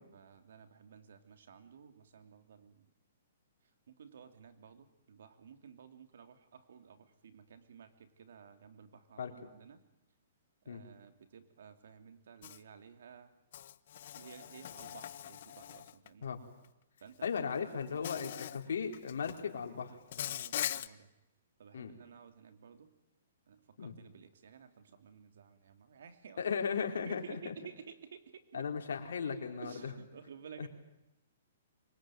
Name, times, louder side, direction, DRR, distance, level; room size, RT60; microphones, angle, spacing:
voice 1, 0.1-2.9 3.9-9.8 10.6-13.3 14.1-16.4 17.0-17.3 20.2-21.1 21.6-22.9 23.5-26.5 27.0-28.7 29.6-30.7, right 7 dB, 70° right, 8 dB, 3.0 m, -54 dB
Insect, 12.4-12.6 13.5-16.1 17.2-17.4 18.0-18.6 18.9-19.4 20.1-20.9, left 11 dB, 55° left, 0.9 m, -41 dB
voice 2, 17.2-20.0 21.7-22.0 23.8-23.9 26.4-27.5 28.5-29.9 30.6-30.7, left 6 dB, 80° left, 2 dB, 4.2 m, -36 dB
25.5 x 22.0 x 9.3 m, 0.89 s
hypercardioid pair, 150°, 0 cm